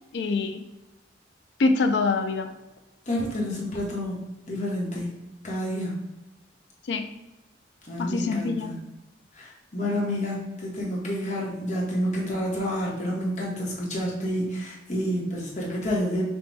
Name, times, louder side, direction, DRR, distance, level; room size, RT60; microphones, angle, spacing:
voice 1, 0.1-0.6 1.6-2.5 6.9-7.1 8.0-8.7, left 3 dB, 70° left, 7 dB, 0.4 m, -25 dB
voice 2, 3.1-4.2 4.5-5.1 5.4-6.0 7.9-8.8 9.3-16.2, equal, 40° left, -3 dB, 1.0 m, -29 dB
6.0 x 2.2 x 3.4 m, 1.0 s
head